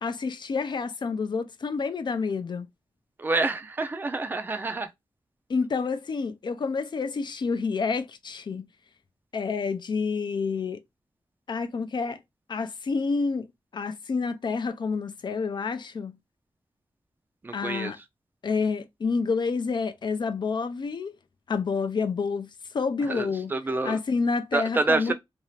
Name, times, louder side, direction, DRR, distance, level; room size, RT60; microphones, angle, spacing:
voice 1, 0.0-2.7 5.5-8.6 9.3-10.8 11.5-12.2 12.5-13.5 13.7-16.1 17.5-18.0 18.4-21.1 21.5-22.5 22.7-23.5 23.8-25.1, left 4 dB, 55° left, 0.4 m, -28 dB
voice 2, 3.2-4.9 17.4-17.9 23.1-24.0 24.5-25.1, right 3 dB, 20° right, 0.4 m, -27 dB
2.6 x 2.4 x 3.1 m
wide cardioid pair, 130°, 9 cm